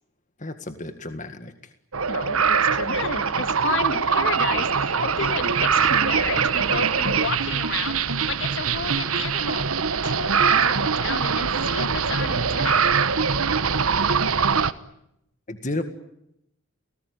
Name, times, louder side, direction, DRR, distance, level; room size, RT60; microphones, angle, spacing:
voice 1, 0.4-1.7 15.5-15.8, left 2 dB, 35° left, 8 dB, 1.9 m, -32 dB
sound 1, 1.9-14.7, right 6 dB, 85° right, 1.2 m, -22 dB
voice 2, 2.1-9.7 10.0-12.9, left 4 dB, 60° left, 8 dB, 2.2 m, -32 dB
30.0 x 19.5 x 9.7 m, 0.81 s
head